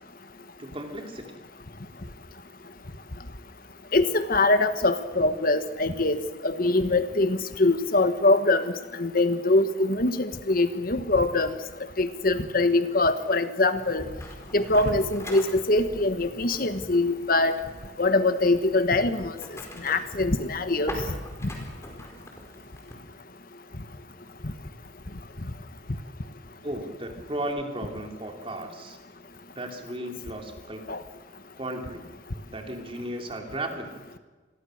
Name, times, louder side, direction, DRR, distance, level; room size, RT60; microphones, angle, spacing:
voice 1, 0.6-1.4 26.6-29.0 29.5-30.8 31.5-32.0 32.5-34.0, right 1 dB, 30° right, 3 dB, 3.2 m, -35 dB
voice 2, 3.9-11.6 12.0-14.1 14.5-17.6 18.0-19.4 19.8-20.9 21.4-21.5 30.9-31.0, left 2 dB, 50° left, 10 dB, 1.3 m, -23 dB
sound 1, 13.7-22.9, equal, 15° left, 4.8 m, -42 dB
27.5 x 22.0 x 6.5 m, 1.4 s
head